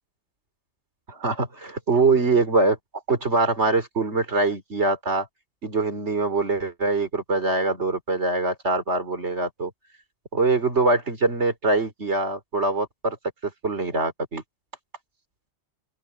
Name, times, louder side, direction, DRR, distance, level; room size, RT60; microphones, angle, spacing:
voice 1, 1.1-2.8 3.1-5.3 5.6-9.7 10.3-13.2 13.4-14.4, right 3 dB, 85° right, 3.7 m, -23 dB
open air
omnidirectional pair, 1.1 m